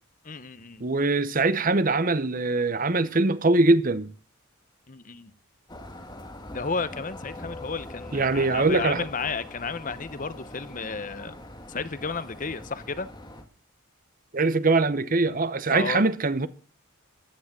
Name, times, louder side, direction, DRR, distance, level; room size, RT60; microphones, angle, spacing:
voice 1, 0.2-0.8 4.9-5.3 6.5-11.4 11.7-13.1 15.7-16.0, left 4 dB, 40° left, 0.9 m, -32 dB
voice 2, 0.8-4.1 8.1-9.1 14.3-16.5, right 3 dB, 40° right, 0.9 m, -22 dB
sound 1, 5.7-13.4, left 1 dB, 20° left, 2.0 m, -42 dB
15.5 x 10.5 x 7.4 m
head